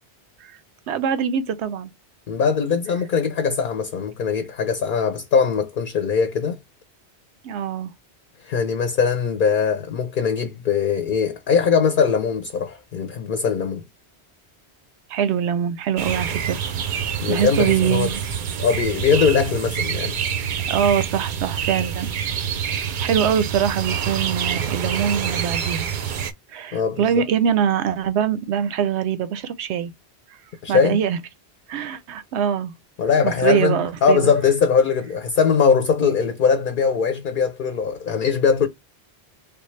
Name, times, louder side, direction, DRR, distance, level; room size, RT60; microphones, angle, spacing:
voice 1, 0.9-1.9 7.4-7.9 15.1-16.6 17.3-18.2 20.7-22.1 22.6-25.9 26.5-29.9 30.7-31.2 31.7-32.7 33.2-34.3, right 8 dB, 90° right, 0.9 m, -23 dB
voice 2, 2.3-6.6 8.4-13.8 17.2-18.1 18.6-20.2 26.7-27.0 30.6-31.0 33.0-38.7, left 6 dB, 55° left, 0.7 m, -21 dB
sound 1, 16.0-26.3, right 8 dB, 55° right, 0.6 m, -26 dB
3.4 x 2.3 x 3.1 m
omnidirectional pair, 1.1 m